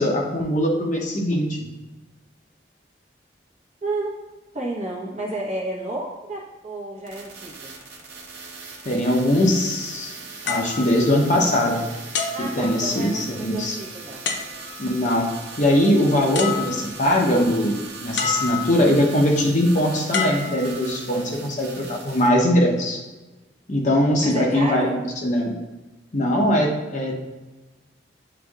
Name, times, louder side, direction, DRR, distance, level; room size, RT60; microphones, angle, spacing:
voice 1, 0.0-1.6 8.8-10.1 10.5-11.9 12.4-13.8 14.8-23.0 23.7-25.5 26.1-27.1, left 1 dB, 45° left, 0 dB, 0.7 m, -21 dB
voice 2, 3.8-4.1 4.5-7.7 12.3-14.2 24.2-25.0, right 2 dB, 40° right, -3 dB, 1.0 m, -31 dB
sound 1, 7.1-22.3, right 3 dB, 70° right, 0.8 m, -40 dB
sound 2, 10.5-11.7 12.1-13.3 14.2-14.9 16.0-16.1 16.3-17.2 18.2-19.0 20.1-21.2 21.9-22.2, left 5 dB, 80° left, 0.5 m, -29 dB
7.7 x 2.6 x 2.4 m, 1.1 s
head